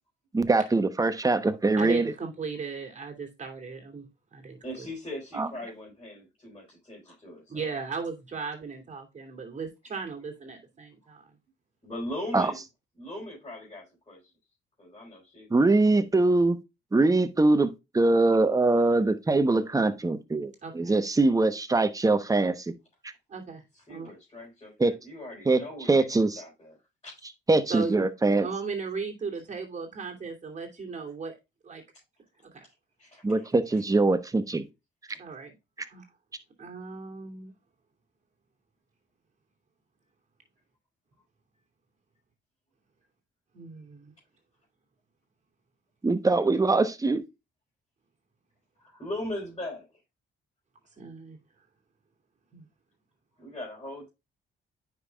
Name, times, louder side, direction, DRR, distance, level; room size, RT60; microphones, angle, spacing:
voice 1, 0.3-2.1 5.4-5.5 12.3-12.5 15.5-16.6 16.9-22.7 24.8-24.9 25.5-25.6 25.9-26.4 27.5-28.5 33.2-34.7 46.0-47.2, right 2 dB, 15° right, 1.0 m, -23 dB
voice 2, 1.8-4.6 7.5-11.3 20.6-20.9 23.3-23.6 23.9-24.1 27.7-28.0 28.4-31.3 31.6-31.8 32.4-32.7 35.2-35.5 35.8-36.0 36.6-37.5 43.5-44.1 51.0-51.4 52.5-52.7, right 4 dB, 35° right, 2.9 m, -36 dB
voice 3, 4.6-7.7 11.8-12.6 13.0-14.3 14.8-15.5 23.9-26.8 27.0-27.2 33.0-33.5 33.9-34.0 48.8-49.9 53.4-54.1, left 1 dB, 25° left, 4.5 m, -39 dB
9.5 x 5.6 x 2.3 m
cardioid pair, 90°, 20 cm